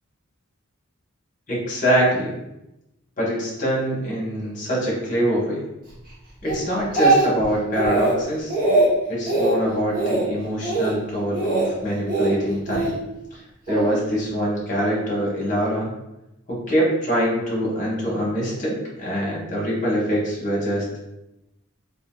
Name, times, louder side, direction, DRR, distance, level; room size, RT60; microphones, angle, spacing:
voice 1, 1.5-2.4 3.2-5.6 6.4-8.5 9.1-12.9 13.3-13.4 13.7-15.9 16.5-21.1, equal, 35° left, -4 dB, 1.0 m, -24 dB
Speech, 6.5-7.5 7.7-8.2 8.5-8.9 9.3-9.5 9.9-10.3 10.6-10.9 11.3-11.7 12.1-12.9 13.7-13.9, right 2 dB, 45° right, 0.8 m, -21 dB
3.4 x 2.4 x 2.3 m, 0.92 s
head